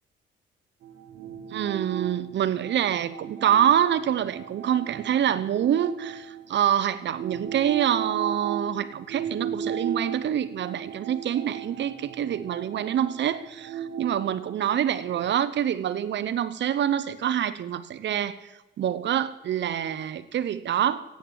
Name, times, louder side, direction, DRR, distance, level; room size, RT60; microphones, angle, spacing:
sound 1, 0.8-6.6 7.1-15.2, right 7 dB, 85° right, 1.4 m, -37 dB
voice 1, 1.5-18.5 18.8-21.2, right 10 dB, 65° right, 14 dB, 1.0 m, -26 dB
15.0 x 8.8 x 9.0 m, 1.1 s
cardioid pair, 90°, 20 cm